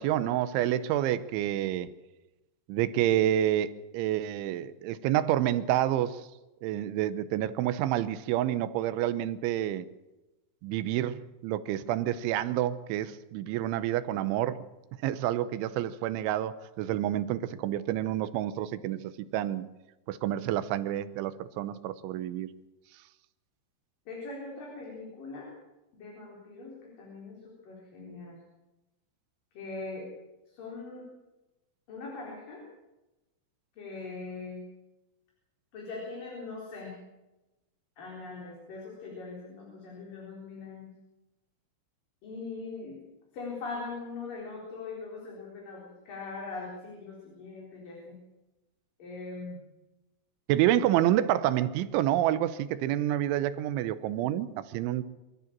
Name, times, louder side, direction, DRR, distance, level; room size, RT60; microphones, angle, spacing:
voice 1, 0.0-1.9 2.7-6.3 6.6-9.9 10.6-14.7 15.0-19.7 20.1-22.5 50.5-55.0, right 12 dB, 80° right, 14 dB, 3.1 m, -28 dB
voice 2, 24.1-25.5 25.9-28.4 29.5-30.1 30.5-31.1 31.9-32.6 33.8-34.6 35.7-37.0 38.0-40.9 42.2-43.0 43.3-48.2 49.0-49.6, left 3 dB, 45° left, -2 dB, 5.5 m, -41 dB
25.0 x 14.0 x 7.4 m, 1.0 s
omnidirectional pair, 5.6 m